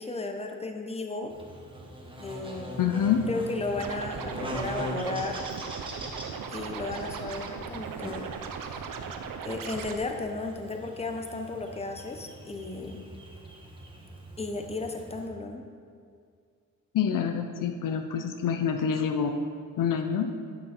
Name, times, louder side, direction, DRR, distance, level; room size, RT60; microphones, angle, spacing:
voice 1, 0.0-1.3 2.2-2.8 3.3-5.4 6.5-8.3 8.5-8.9 9.4-13.1 14.4-15.6, left 3 dB, 20° left, 4 dB, 1.0 m, -34 dB
Buzz, 1.3-15.3, right 1 dB, 15° right, 1.4 m, -42 dB
voice 2, 2.8-3.2 16.9-19.5 19.8-20.3, left 7 dB, 70° left, 6 dB, 0.7 m, -27 dB
Scratching (performance technique), 3.8-9.9, right 6 dB, 75° right, 0.8 m, -38 dB
10.5 x 6.3 x 4.4 m, 2.2 s
cardioid pair, 75°, 33 cm